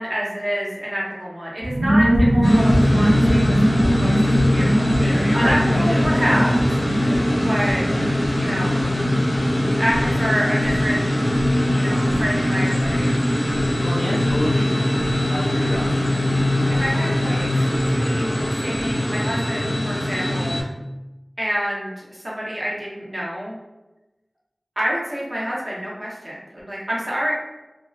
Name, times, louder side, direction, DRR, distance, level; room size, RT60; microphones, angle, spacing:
voice 1, 0.0-4.9 5.3-6.5 7.4-7.8 8.3-8.9 9.8-11.1 11.7-13.2 16.8-20.6 21.4-23.6 24.8-27.3, equal, 40° right, -5 dB, 0.8 m, -27 dB
sound 1, 1.6-17.9 18.2-18.3 18.5-18.9, equal, 70° right, 0.3 m, -23 dB
sound 2, 2.4-20.6, left 1 dB, 90° left, 0.6 m, -21 dB
voice 2, 5.0-7.4 7.9-8.2 13.8-16.2, equal, 25° left, -3 dB, 0.4 m, -29 dB
2.6 x 2.1 x 2.4 m, 1.0 s
wide cardioid pair, 55°, 0 cm